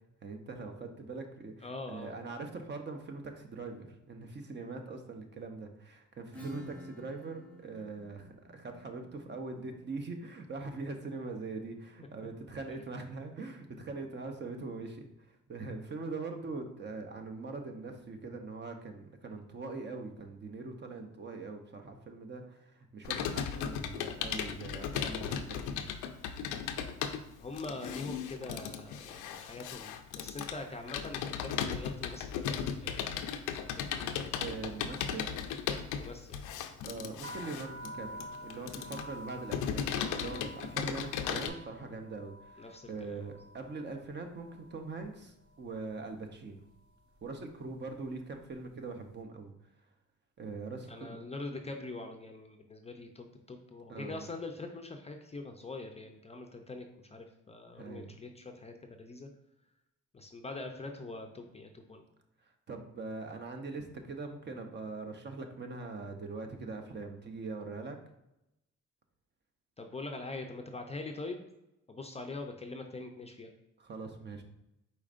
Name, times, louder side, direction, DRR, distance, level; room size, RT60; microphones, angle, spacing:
voice 1, 0.2-25.9 34.4-35.3 36.8-39.9 40.1-46.6 47.2-49.5 50.4-51.2 53.9-54.2 57.8-58.1 62.7-68.0 73.8-74.4, right 3 dB, 35° right, 5 dB, 0.7 m, -42 dB
voice 2, 1.6-2.1 27.4-33.2 33.7-34.1 36.0-36.5 42.6-43.3 50.9-59.3 60.1-62.0 69.8-71.5 71.9-73.5, left 2 dB, 20° left, 4 dB, 0.5 m, -43 dB
Acoustic guitar / Strum, 6.3-11.7, left 1 dB, 5° left, 0.9 m, -52 dB
Computer keyboard, 23.0-41.5, left 8 dB, 90° left, 0.5 m, -36 dB
sound 1, 37.2-45.1 45.4-46.0 46.7-46.9 47.2-48.7, right 1 dB, 70° right, 0.8 m, -50 dB
4.9 x 4.2 x 2.5 m, 0.88 s
cardioid pair, 90°, 30 cm